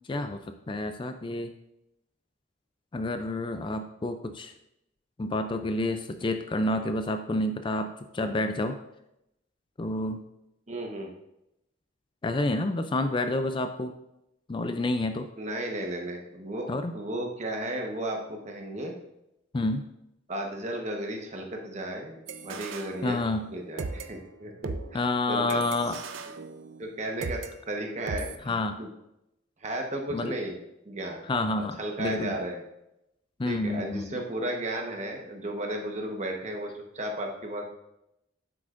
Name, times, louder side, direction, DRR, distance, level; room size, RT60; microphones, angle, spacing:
voice 1, 0.1-0.4 0.7-1.5 2.9-4.5 5.2-8.8 9.8-10.2 12.2-13.9 14.5-15.3 16.7-16.9 19.5-19.9 23.0-23.5 24.9-26.0 28.5-28.8 30.1-30.3 31.3-32.4 33.4-34.2, left 2 dB, 25° left, 8 dB, 0.4 m, -29 dB
voice 2, 10.7-11.1 15.4-18.9 20.3-23.2 23.5-26.0 26.8-28.9 29.6-30.6 30.9-31.2 31.6-32.6 33.4-37.7, right 1 dB, 35° right, 2 dB, 1.1 m, -34 dB
sound 1, 22.3-23.5 23.8-27.5 28.1-28.4, right 4 dB, 80° right, 0.5 m, -38 dB
9.6 x 7.8 x 2.5 m, 0.85 s
head